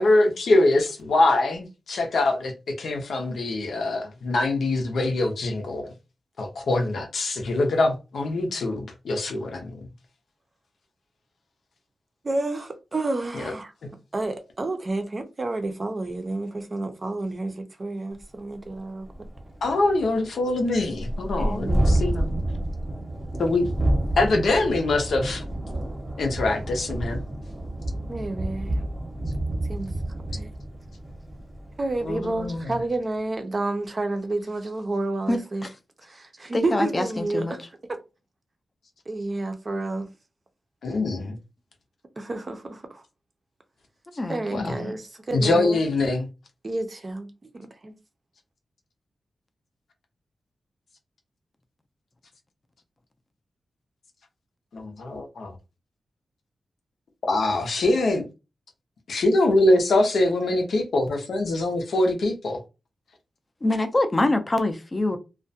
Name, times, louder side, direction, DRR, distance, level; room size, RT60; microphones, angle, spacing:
voice 1, 0.0-5.9 6.4-9.8 13.3-13.5 13.8-13.9 19.6-22.2 23.4-23.7 24.2-25.4 26.2-27.2 32.0-32.7 40.8-41.4 44.5-44.7 45.3-46.3 54.7-55.5 57.2-58.3 59.1-62.6, left 2 dB, 80° left, 0.6 m, -23 dB
voice 2, 12.2-13.7 14.1-19.1 21.4-22.0 28.1-28.9 29.7-29.9 30.4-30.5 31.8-35.7 36.0-37.6 39.1-40.1 42.2-43.0 44.3-45.8 46.6-48.0, right 2 dB, 35° right, 0.5 m, -30 dB
Thunderstorm, 18.2-18.3 18.7-18.8 19.1-32.7, right 1 dB, 10° right, 0.8 m, -29 dB
voice 3, 35.3-35.7 36.5-37.5 44.2-44.9 63.6-65.2, left 2 dB, 25° left, 0.4 m, -25 dB
2.3 x 2.1 x 2.6 m
wide cardioid pair, 125°, 0 cm